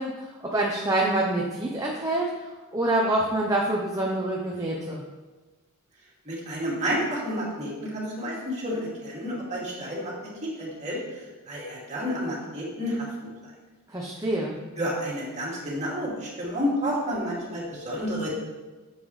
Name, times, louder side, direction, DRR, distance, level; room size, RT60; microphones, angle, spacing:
voice 1, 0.0-2.2 2.7-5.0 13.9-14.6, right 1 dB, 15° right, -3 dB, 0.8 m, -26 dB
voice 2, 6.3-11.2 11.5-13.1 14.8-18.3, equal, 30° right, -6 dB, 2.5 m, -30 dB
9.3 x 7.1 x 3.2 m, 1.2 s
head